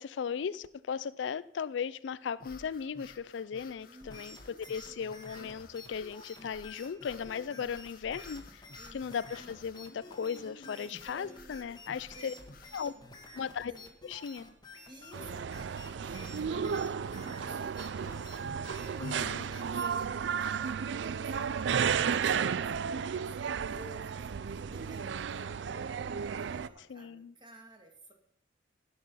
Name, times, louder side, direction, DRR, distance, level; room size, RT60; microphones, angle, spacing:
voice 1, 0.0-8.6 8.9-12.3 12.7-12.9 13.3-13.7 14.0-14.4 19.0-19.5 26.9-27.3, left 7 dB, 70° left, 18 dB, 0.4 m, -37 dB
sound 1, 2.3-12.8, left 3 dB, 50° left, 1.1 m, -54 dB
voice 2, 3.8-4.6 4.9-5.1 7.5-8.1 8.8-9.1 10.7-13.2 13.7-13.9 14.9-18.2 18.7-25.9 26.2-28.1, right 2 dB, 25° right, 3 dB, 1.8 m, -54 dB
sound 2, 4.0-20.1, left 2 dB, 20° left, 1.6 m, -51 dB
sound 3, 15.1-26.7, right 7 dB, 65° right, 0.4 m, -33 dB
16.0 x 6.0 x 5.5 m, 0.72 s
head